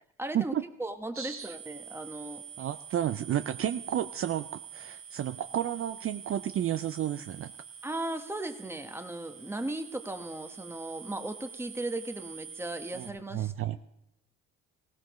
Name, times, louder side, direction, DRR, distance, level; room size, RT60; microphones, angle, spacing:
voice 1, 0.2-2.4 7.8-13.8, right 2 dB, 10° right, 7 dB, 1.1 m, -37 dB
voice 2, 1.2-1.6 2.6-7.5 12.9-13.8, right 11 dB, 45° right, 10 dB, 0.4 m, -32 dB
sound 1, 1.4-13.1, right 7 dB, 85° right, 3.6 m, -46 dB
18.5 x 16.5 x 3.1 m, 0.85 s
cardioid pair, 90°, 30 cm